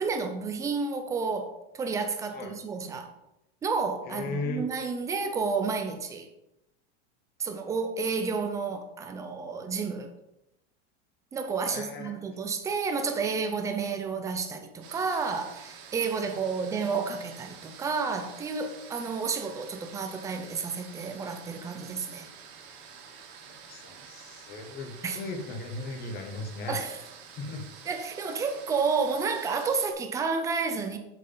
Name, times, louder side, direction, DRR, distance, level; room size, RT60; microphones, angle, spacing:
voice 1, 0.0-3.1 3.6-6.3 7.4-10.1 11.3-22.3 25.0-25.2 26.7-27.0 27.9-31.0, right 5 dB, 10° right, 0.5 m, -31 dB
voice 2, 4.1-4.6 11.6-12.1 23.5-26.8 27.3-27.6, left 3 dB, 25° left, 1.2 m, -37 dB
sound 1, 14.8-29.9, right 6 dB, 65° right, 2.2 m, -48 dB
7.6 x 7.4 x 3.9 m
supercardioid pair, 175°, 34 cm